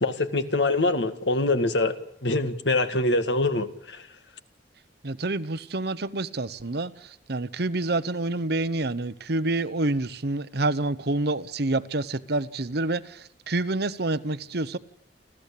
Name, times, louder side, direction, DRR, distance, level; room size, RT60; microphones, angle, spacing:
voice 1, 0.0-4.1, left 2 dB, 90° left, 1.9 m, -24 dB
voice 2, 5.0-6.9 7.3-14.8, right 2 dB, 65° right, 1.1 m, -27 dB
29.0 x 13.5 x 8.6 m
head